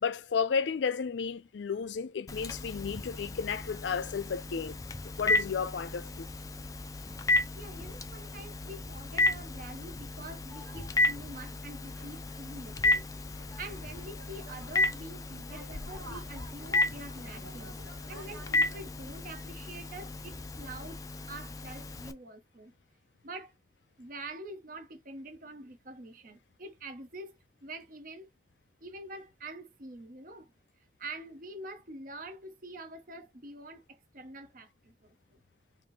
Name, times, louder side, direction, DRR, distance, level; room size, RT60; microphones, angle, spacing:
voice 1, 0.0-4.8 5.2-6.3, left 6 dB, 80° left, 0.4 m, -32 dB
Telephone, 2.3-22.1, left 2 dB, 20° left, 0.4 m, -33 dB
voice 2, 7.5-13.1 13.6-17.8 18.1-21.0 21.3-22.7 23.2-23.5 24.0-28.3 28.8-30.5 31.0-35.1, right 2 dB, 50° right, 0.8 m, -45 dB
sound 1, 10.5-18.8, right 2 dB, 90° right, 2.1 m, -52 dB
3.6 x 2.7 x 4.0 m
head